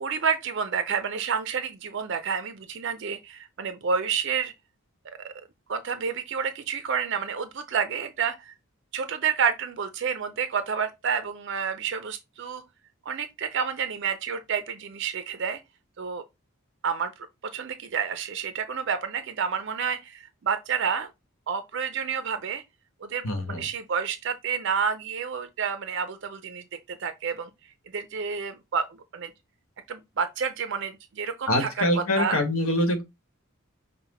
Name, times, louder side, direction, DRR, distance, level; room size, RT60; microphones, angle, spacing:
voice 1, 0.0-4.5 5.2-5.3 5.7-8.5 8.9-12.6 13.1-15.6 16.0-16.2 16.8-17.1 17.5-21.1 21.5-22.6 23.0-27.5 27.9-29.3 29.9-32.4, right 6 dB, 55° right, 0.4 m, -29 dB
voice 2, 23.2-23.7 31.5-33.0, left 1 dB, 70° left, 1.2 m, -24 dB
5.6 x 2.1 x 4.1 m
head